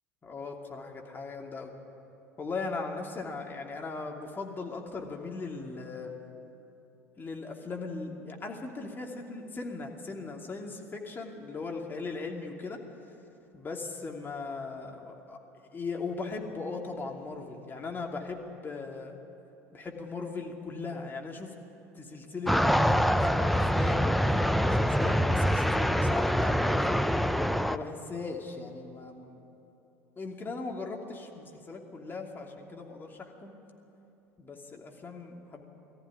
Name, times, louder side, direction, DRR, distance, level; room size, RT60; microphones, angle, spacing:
voice 1, 0.2-1.7 2.4-6.2 7.2-12.8 13.5-15.4 15.7-19.2 19.7-21.5 21.9-27.0 27.7-29.4 30.2-33.5 34.4-35.6, left 3 dB, 25° left, 1 dB, 2.8 m, -38 dB
sound 1, 22.5-27.8, equal, ahead, 0.6 m, -25 dB
19.5 x 14.0 x 9.9 m, 2.9 s
figure-of-eight pair, 75°, 8 cm